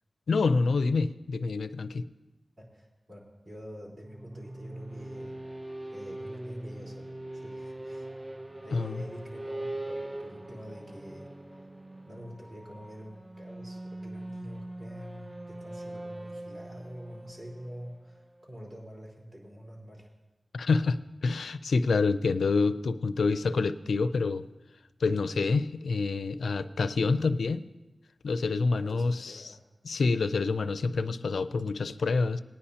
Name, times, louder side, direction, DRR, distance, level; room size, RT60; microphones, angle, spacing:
voice 1, 0.3-2.0 8.7-9.0 20.5-24.4 25.0-27.7 28.2-29.5 29.8-32.4, left 4 dB, 85° left, 12 dB, 0.4 m, -27 dB
voice 2, 2.7-5.4 5.9-8.1 8.6-11.7 12.0-20.1 28.7-29.6, equal, 50° right, -4 dB, 3.8 m, -46 dB
sound 1, 4.0-18.7, right 1 dB, 20° right, 0.3 m, -42 dB
19.5 x 9.8 x 2.8 m, 1.1 s
cardioid pair, 60°, 0 cm